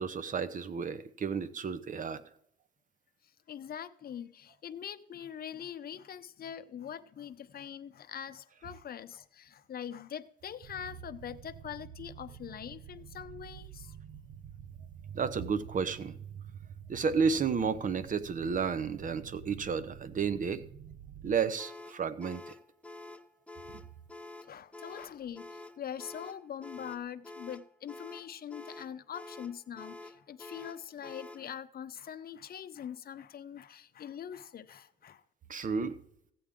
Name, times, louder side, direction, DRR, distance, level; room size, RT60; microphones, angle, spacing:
voice 1, 0.0-2.2 15.1-16.2 16.9-20.6 21.2-22.5 35.5-36.0, right 6 dB, 40° right, 0.9 m, -32 dB
voice 2, 3.5-14.0 24.4-35.2, left 9 dB, 50° left, 0.7 m, -43 dB
sound 1, 10.6-21.4, right 9 dB, 75° right, 0.7 m, -48 dB
sound 2, 21.6-31.5, left 2 dB, 5° left, 0.6 m, -48 dB
15.0 x 8.6 x 3.7 m
cardioid pair, 90°, 20 cm